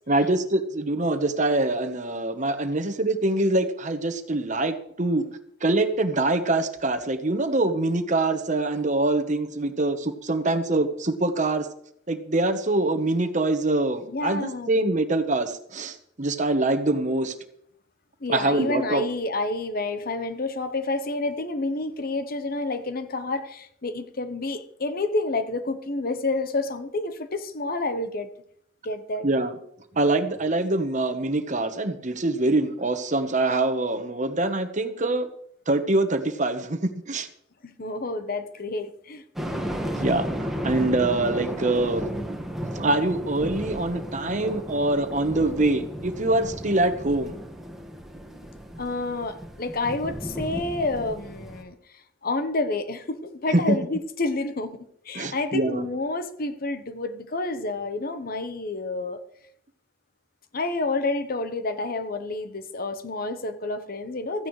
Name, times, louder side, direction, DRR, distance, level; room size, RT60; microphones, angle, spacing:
voice 1, 0.1-5.2 5.6-11.7 12.1-17.3 18.3-19.0 29.2-29.6 29.9-35.3 35.7-37.3 40.0-42.1 42.7-47.4 53.5-53.8 55.1-55.8, right 2 dB, 40° right, 9 dB, 1.1 m, -24 dB
voice 2, 14.1-14.8 18.2-28.3 28.8-29.3 37.6-39.2 48.8-51.7 52.2-59.2 60.5-64.5, left 2 dB, 50° left, 10 dB, 1.0 m, -29 dB
sound 1, 39.4-51.6, equal, ahead, 1.7 m, -34 dB
16.0 x 14.5 x 3.2 m, 0.71 s
head